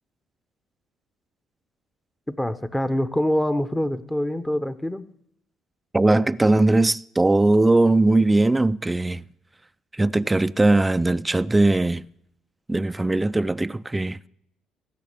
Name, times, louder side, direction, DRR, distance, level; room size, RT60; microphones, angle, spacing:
voice 1, 2.3-5.1, equal, 10° left, 0.9 m, -25 dB
voice 2, 5.9-9.2 9.9-12.0 12.7-14.2, right 2 dB, 15° right, 0.4 m, -20 dB
15.5 x 5.8 x 8.2 m
hypercardioid pair, 55°, 0 cm